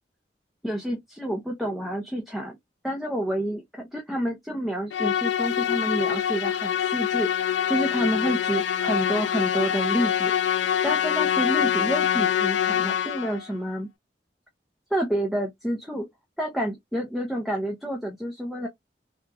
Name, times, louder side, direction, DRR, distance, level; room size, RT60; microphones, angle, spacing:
voice 1, 0.6-2.6 2.8-7.3 7.7-10.3 10.8-13.9 14.9-16.1 16.4-18.7, right 1 dB, ahead, 0.5 m, -29 dB
Musical instrument, 4.9-13.4, left 9 dB, 80° left, 0.3 m, -25 dB
2.9 x 2.3 x 2.4 m
head